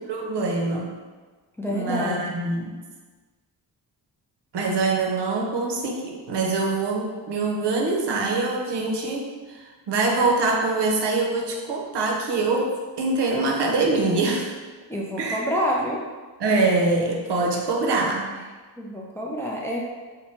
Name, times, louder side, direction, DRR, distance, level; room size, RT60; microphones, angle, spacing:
voice 1, 0.1-1.0 1.7-2.7 4.5-14.5 15.2-15.4 16.4-18.3, right 3 dB, 65° right, 0 dB, 0.6 m, -24 dB
voice 2, 1.6-2.4 14.9-16.0 18.8-19.8, equal, 5° left, -3 dB, 0.4 m, -27 dB
2.7 x 2.1 x 3.2 m, 1.4 s
cardioid pair, 55°, 45 cm